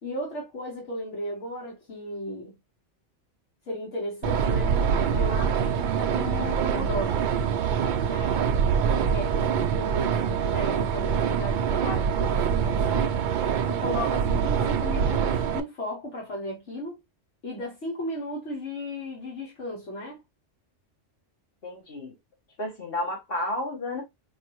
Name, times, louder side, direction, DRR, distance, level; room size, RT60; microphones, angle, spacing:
voice 1, 0.0-2.6 3.7-4.8 5.1-7.2 8.0-8.4 9.1-17.0 17.4-20.2, left 1 dB, 70° left, 1.6 m, -35 dB
sound 1, 4.2-15.6, right 7 dB, 60° right, 0.5 m, -25 dB
voice 2, 21.6-22.1 22.6-24.0, left 1 dB, 50° left, 1.9 m, -31 dB
4.6 x 2.7 x 2.9 m
omnidirectional pair, 1.3 m